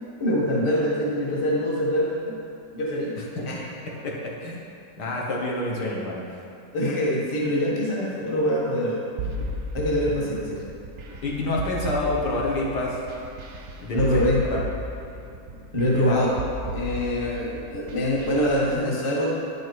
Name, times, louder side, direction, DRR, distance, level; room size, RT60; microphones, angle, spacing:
voice 1, 0.2-2.3 2.7-3.6 6.7-9.0 9.3-9.4 9.7-10.6 13.9-14.4 15.7-16.4 16.7-19.3, equal, 20° left, -4 dB, 0.9 m, -24 dB
voice 2, 5.0-6.2 11.2-13.0 13.8-14.6 16.0-16.2, left 2 dB, 65° left, -3 dB, 1.6 m, -27 dB
sound 1, 9.2-18.7, equal, 55° right, 0.8 m, -34 dB
9.2 x 5.3 x 4.6 m, 2.6 s
omnidirectional pair, 2.0 m